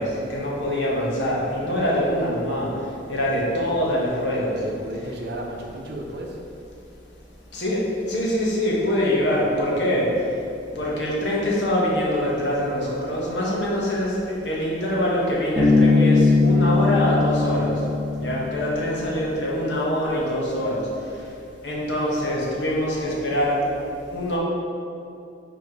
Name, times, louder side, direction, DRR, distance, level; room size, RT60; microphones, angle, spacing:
voice 1, 0.0-4.6 7.5-10.4 10.7-17.9 18.2-21.4 21.6-23.6 24.1-24.4, equal, 80° left, -4 dB, 1.4 m, -24 dB
voice 2, 3.1-3.9 4.5-6.5 18.2-18.5, right 1 dB, 65° right, 0 dB, 0.8 m, -35 dB
Bass guitar, 15.6-19.1, left 3 dB, 5° right, 1.4 m, -20 dB
4.8 x 4.6 x 4.7 m, 2.6 s
head